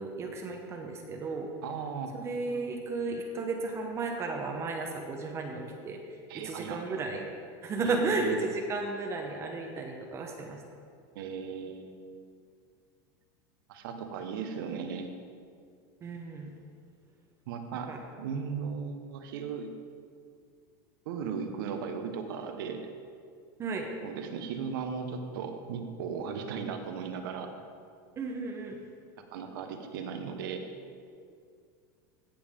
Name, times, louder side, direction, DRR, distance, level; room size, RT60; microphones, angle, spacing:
voice 1, 0.0-1.5 2.2-6.0 6.3-7.3 7.6-10.6 16.0-16.5 17.9-18.0 23.6-23.9 28.2-28.9, right 3 dB, 25° right, 2 dB, 0.9 m, -34 dB
voice 2, 1.6-2.1 6.3-6.8 7.8-8.4 11.1-11.9 13.7-15.1 17.5-19.7 21.0-22.8 24.0-27.5 29.3-30.7, right 6 dB, 75° right, 6 dB, 1.2 m, -36 dB
16.0 x 7.2 x 3.7 m, 2.2 s
supercardioid pair, 160°, 12 cm